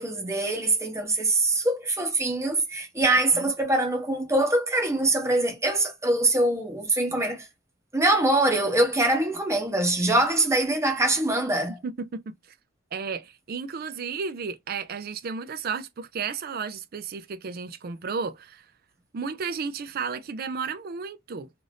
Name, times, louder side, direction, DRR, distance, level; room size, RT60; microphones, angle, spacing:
voice 1, 0.0-7.5 7.9-11.8, right 2 dB, 15° right, 0.8 m, -23 dB
voice 2, 11.8-12.5 12.9-18.7 19.1-21.5, right 5 dB, 50° right, 0.4 m, -33 dB
2.5 x 2.5 x 3.2 m
head